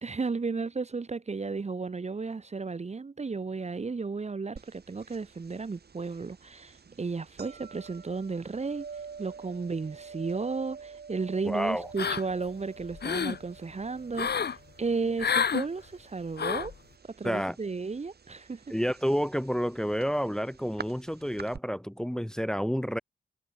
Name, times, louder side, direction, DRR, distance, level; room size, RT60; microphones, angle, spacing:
voice 1, 0.0-8.9 9.2-16.7 17.2-18.6, right 4 dB, 35° right, 0.9 m, -34 dB
sound 1, 4.6-21.6, right 5 dB, 55° right, 1.7 m, -48 dB
voice 2, 11.4-11.9 17.2-17.6 18.7-23.0, equal, 5° left, 1.0 m, -29 dB
sound 2, 12.0-12.5 12.8-13.4 14.1-14.6 15.2-15.7 16.4-16.7, left 6 dB, 55° left, 0.9 m, -29 dB
wide cardioid pair, 130°, 20 cm